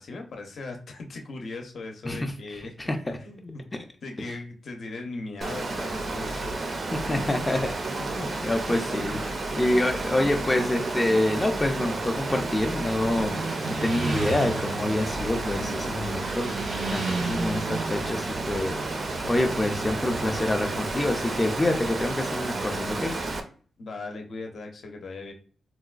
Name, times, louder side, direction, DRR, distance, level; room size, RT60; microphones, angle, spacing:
voice 1, 0.0-2.9 3.2-3.6 4.0-6.5 8.0-8.3 8.7-9.4 23.8-25.3, left 3 dB, 60° left, 3 dB, 0.6 m, -39 dB
Water, 5.4-23.4, right 2 dB, 40° right, 0.4 m, -31 dB
voice 2, 6.9-7.8 8.2-9.2 9.5-13.4 13.7-16.6 16.9-23.1, left 1 dB, 20° left, 4 dB, 0.4 m, -27 dB
Motorcycle, 11.2-20.9, right 3 dB, 90° right, 0.9 m, -36 dB
3.9 x 2.2 x 2.4 m, 0.42 s
wide cardioid pair, 120°, 0 cm